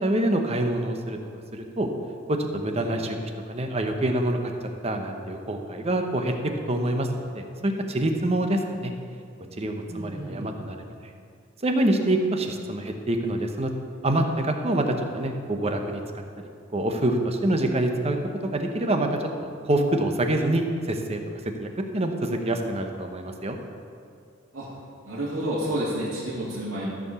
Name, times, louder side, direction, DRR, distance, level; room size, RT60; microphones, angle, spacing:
voice 1, 0.0-1.2 1.5-1.9 2.3-3.2 3.5-4.5 4.8-6.3 6.7-8.9 9.6-10.8 11.6-13.7 14.0-16.0 16.4-18.2 18.5-19.2 19.6-21.2 21.6-23.6, right 1 dB, 30° right, 4 dB, 0.9 m, -26 dB
voice 2, 9.9-10.5 24.5-24.7 25.0-26.9, right 1 dB, 85° right, -8 dB, 2.4 m, -30 dB
14.0 x 4.7 x 6.9 m, 2.3 s
head